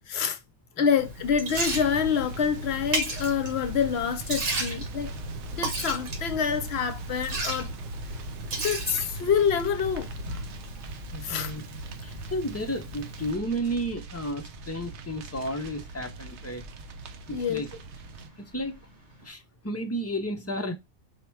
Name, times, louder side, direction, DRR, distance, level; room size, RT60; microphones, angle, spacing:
voice 1, 0.1-0.4 0.8-5.1 5.5-7.7 8.6-10.1 11.2-11.5 17.3-17.6, left 7 dB, 65° left, 0.8 m, -27 dB
sound 1, 0.9-19.3, equal, 40° right, 1.6 m, -51 dB
Liquid, 1.0-13.3, right 2 dB, 85° right, 1.6 m, -35 dB
sound 2, 1.5-18.3, right 3 dB, 70° right, 0.9 m, -41 dB
voice 2, 11.1-11.6 12.0-16.6 17.3-17.7 18.4-18.8 19.2-20.7, equal, 20° left, 0.4 m, -32 dB
4.7 x 2.2 x 4.4 m
omnidirectional pair, 1.3 m